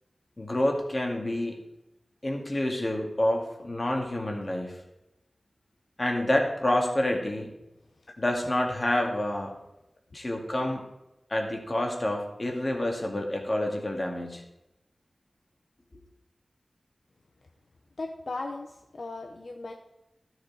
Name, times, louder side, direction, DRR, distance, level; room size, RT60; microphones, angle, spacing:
voice 1, 0.4-1.6 2.2-4.8 6.0-7.5 8.2-9.5 10.1-10.8 11.3-14.4, left 1 dB, 35° left, 1 dB, 2.2 m, -28 dB
voice 2, 18.0-19.7, left 3 dB, 65° left, 3 dB, 0.8 m, -37 dB
13.0 x 6.6 x 4.7 m, 0.91 s
wide cardioid pair, 65°, 0 cm